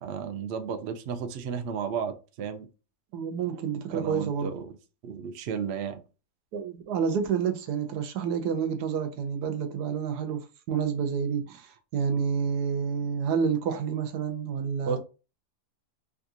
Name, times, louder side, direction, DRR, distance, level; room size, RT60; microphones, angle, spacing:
voice 1, 0.0-2.7 3.9-4.7 5.0-6.0 14.9-15.0, right 7 dB, 65° right, 0.7 m, -33 dB
voice 2, 3.1-4.5 6.5-15.0, right 6 dB, 85° right, 1.2 m, -29 dB
3.6 x 2.4 x 2.7 m
omnidirectional pair, 1.7 m